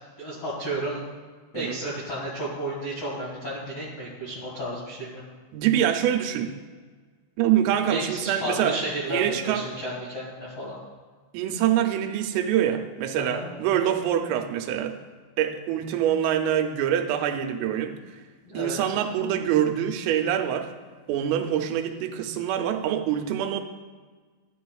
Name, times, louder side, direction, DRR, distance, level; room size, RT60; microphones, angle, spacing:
voice 1, 0.2-1.0 1.5-5.2 7.9-10.8 13.2-13.5 18.4-18.8, right 1 dB, 80° left, -6 dB, 1.3 m, -32 dB
voice 2, 5.5-6.5 7.4-8.8 9.1-9.7 11.3-15.0 15.4-17.9 18.5-20.7 21.1-23.6, right 10 dB, 90° right, 6 dB, 3.3 m, -25 dB
13.0 x 8.8 x 2.3 m, 1.5 s
omnidirectional pair, 5.7 m